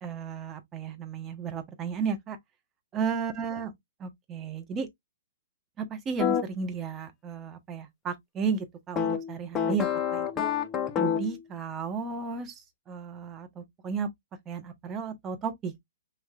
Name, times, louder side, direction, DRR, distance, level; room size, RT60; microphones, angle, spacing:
voice 1, 0.0-2.4 2.9-3.7 4.0-4.9 5.8-10.3 11.0-14.1 14.5-15.8, right 5 dB, 20° right, 1.3 m, -34 dB
sound 1, 6.2-6.4 9.0-11.4, left 8 dB, 20° left, 0.9 m, -28 dB
5.6 x 3.0 x 2.5 m
hypercardioid pair, 120°, 0 cm